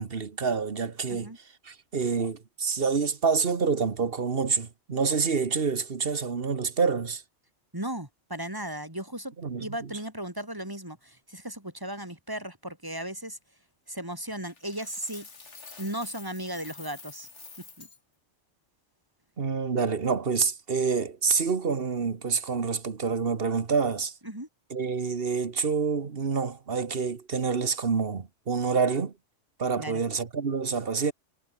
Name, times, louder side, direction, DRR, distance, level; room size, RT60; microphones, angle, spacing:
voice 1, 0.0-1.3 1.6-7.2 9.4-9.7 19.4-24.1 24.7-29.1 29.6-31.1, right 5 dB, 50° right, 1.6 m, -27 dB
voice 2, 7.7-9.3 9.6-13.4 13.9-15.3 15.8-17.3 17.8-17.9 24.2-24.5 29.8-30.0, right 1 dB, 15° right, 3.7 m, -36 dB
Coin (dropping), 14.5-18.0, left 4 dB, 70° left, 2.7 m, -48 dB
omnidirectional pair, 1.2 m